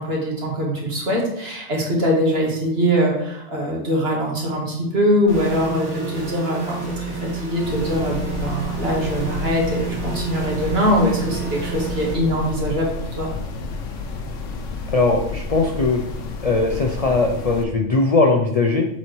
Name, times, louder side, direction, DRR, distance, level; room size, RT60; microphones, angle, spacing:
voice 1, 0.0-13.3, equal, 55° right, -2 dB, 1.8 m, -22 dB
sound 1, 5.3-12.1, right 5 dB, 70° right, 1.6 m, -30 dB
sound 2, 7.6-17.6, left 4 dB, 80° left, 1.1 m, -31 dB
voice 2, 14.9-16.0 16.4-18.9, left 3 dB, 45° left, 2 dB, 0.4 m, -19 dB
7.3 x 4.1 x 3.2 m, 0.77 s
omnidirectional pair, 1.3 m